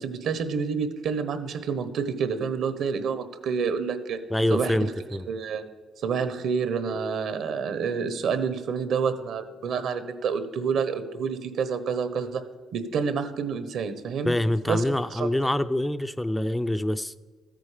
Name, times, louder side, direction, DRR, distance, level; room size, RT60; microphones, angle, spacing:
voice 1, 0.0-4.2 4.5-4.8 5.3-5.6 6.0-12.4 12.7-14.4 14.7-14.8 15.1-15.3, right 6 dB, 75° right, 11 dB, 1.1 m, -28 dB
voice 2, 4.3-5.3 14.3-17.1, left 1 dB, 10° left, 11 dB, 0.4 m, -25 dB
13.5 x 9.1 x 5.1 m, 1.3 s
cardioid pair, 90°, 0 cm